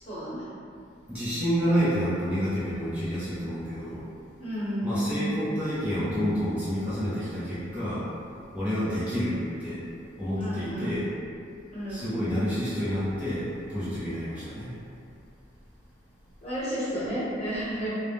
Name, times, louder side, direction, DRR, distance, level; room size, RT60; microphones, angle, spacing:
voice 1, 0.0-0.5 4.4-5.3 10.4-10.9 11.7-12.1 16.4-17.9, equal, 35° left, -10 dB, 0.8 m, -31 dB
voice 2, 1.1-4.0 4.8-8.0 8.5-9.8 10.2-11.0 11.9-14.7, equal, 5° right, -12 dB, 0.5 m, -29 dB
2.1 x 2.0 x 3.3 m, 2.5 s
head